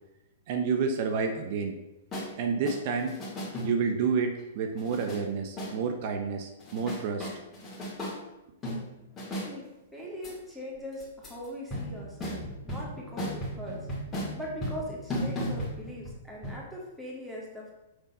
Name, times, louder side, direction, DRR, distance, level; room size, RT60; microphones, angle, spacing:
voice 1, 0.5-1.8 2.4-3.2 3.6-7.3, right 5 dB, 50° right, 5 dB, 0.8 m, -29 dB
sound 1, 2.1-2.3 2.7-4.0 4.8-5.2 5.6-5.8 6.6-8.2 8.6-9.5 10.2-10.3 11.0-11.5 11.7-16.2 16.4-16.5, equal, 15° left, 2.1 m, -36 dB
voice 2, 9.3-13.9 14.3-17.7, equal, ahead, -5 dB, 1.9 m, -41 dB
6.3 x 3.9 x 5.3 m, 0.94 s
hypercardioid pair, 130°, 0 cm